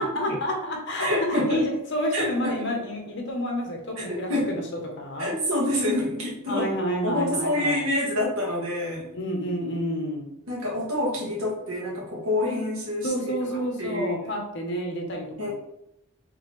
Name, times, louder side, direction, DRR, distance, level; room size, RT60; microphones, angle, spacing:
voice 1, 0.0-4.6 5.0-5.3 6.5-7.8 9.1-10.3 13.0-15.5, equal, 50° left, 1 dB, 0.9 m, -29 dB
voice 2, 1.0-1.6 2.1-2.6 4.0-4.6 5.2-6.6 7.0-9.1 10.5-13.4 13.8-14.2 15.4-15.5, left 1 dB, 75° right, -4 dB, 1.5 m, -27 dB
3.9 x 3.3 x 3.2 m, 0.81 s
head